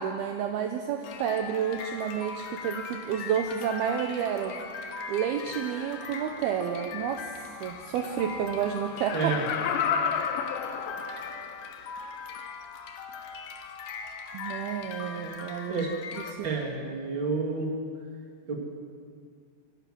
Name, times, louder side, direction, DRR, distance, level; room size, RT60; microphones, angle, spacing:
voice 1, 0.0-4.5 5.1-9.3 14.3-15.9 16.2-16.5, right 8 dB, 80° right, 5 dB, 2.3 m, -30 dB
sound 1, 1.0-16.3, left 5 dB, 60° left, 2.9 m, -40 dB
Laughter, 8.9-11.6 12.0-12.1, left 7 dB, 80° left, 3.5 m, -30 dB
voice 2, 9.1-9.4 15.7-15.9 16.4-17.7 18.5-18.6, right 4 dB, 30° right, 0 dB, 2.6 m, -29 dB
27.0 x 16.5 x 6.2 m, 2.1 s
omnidirectional pair, 5.6 m